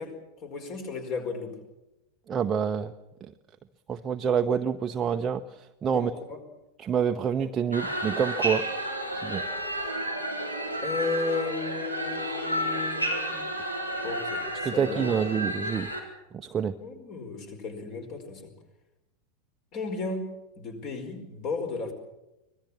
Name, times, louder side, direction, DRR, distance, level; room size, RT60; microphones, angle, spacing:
voice 1, 0.0-1.6 5.9-6.4 10.8-13.4 14.0-15.2 16.8-18.5 19.7-21.9, left 4 dB, 40° left, 6 dB, 4.9 m, -34 dB
voice 2, 2.3-2.9 3.2-3.3 3.9-6.1 6.8-8.6 9.1-9.4 14.6-15.9 16.3-16.7, right 7 dB, 20° right, 6 dB, 0.8 m, -27 dB
sound 1, 7.7-16.0, right 1 dB, 90° left, 4.2 m, -31 dB
25.0 x 18.5 x 7.4 m, 0.95 s
figure-of-eight pair, 90°, 0 cm